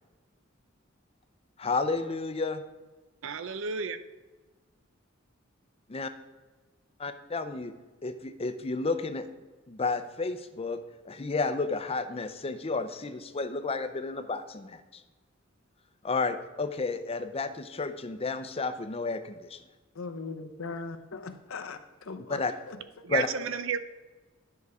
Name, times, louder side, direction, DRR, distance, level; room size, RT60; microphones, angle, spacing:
voice 1, 1.6-2.6 5.9-6.1 7.0-7.7 8.0-9.3 9.7-10.8 11.0-15.0 16.0-19.6 22.3-22.5 23.1-23.3, left 3 dB, 30° left, 0.6 m, -31 dB
voice 2, 3.2-4.0 23.0-23.8, right 6 dB, 70° right, 0.6 m, -32 dB
voice 3, 19.9-23.1, left 4 dB, 85° left, 0.8 m, -40 dB
10.5 x 5.6 x 4.8 m
head